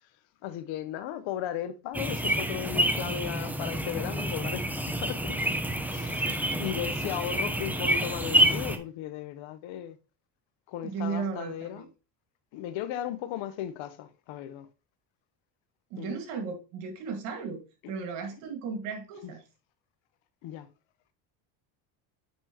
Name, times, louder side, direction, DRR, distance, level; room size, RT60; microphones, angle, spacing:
voice 1, 0.4-5.4 5.9-10.0 10.7-11.9 12.5-14.7 16.0-16.2 20.4-20.7, left 10 dB, 65° left, 1.0 m, -36 dB
sound 1, 1.9-8.8, right 1 dB, 5° right, 0.8 m, -28 dB
voice 2, 10.8-11.9 15.9-17.6 17.9-19.4, right 5 dB, 80° right, 2.0 m, -35 dB
9.3 x 4.5 x 2.9 m
supercardioid pair, 85°, 49 cm